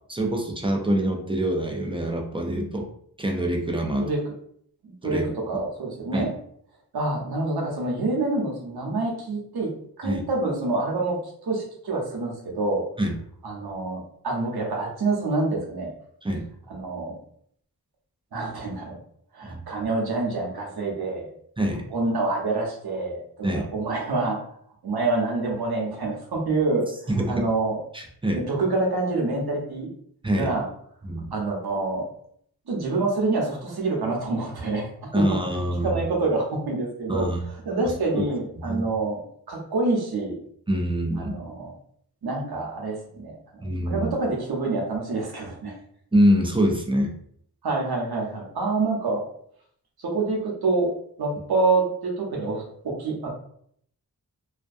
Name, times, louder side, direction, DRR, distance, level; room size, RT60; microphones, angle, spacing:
voice 1, 0.1-2.9 3.2-4.1 5.0-5.3 6.1-6.3 10.0-10.2 13.0-13.2 16.2-16.5 19.4-19.6 21.6-21.9 23.4-23.7 27.1-27.5 27.9-28.4 30.2-30.5 31.0-31.3 35.1-36.0 37.1-37.4 38.1-38.2 38.6-38.8 40.7-41.4 43.6-44.1 46.1-47.1, equal, 15° right, 1 dB, 0.5 m, -25 dB
voice 2, 4.8-6.4 6.9-9.7 10.0-12.8 13.4-15.9 16.7-17.1 18.3-18.9 19.3-21.3 21.9-24.5 24.8-27.8 28.5-29.9 30.3-30.7 31.3-32.1 32.7-34.9 35.1-35.3 35.8-37.3 37.7-39.2 39.5-40.4 41.2-41.8 42.2-43.3 43.9-45.7 47.6-49.2 50.0-50.9 51.2-53.3, right 3 dB, 80° right, -1 dB, 0.8 m, -27 dB
2.3 x 2.2 x 2.5 m, 0.65 s
cardioid pair, 55°, 37 cm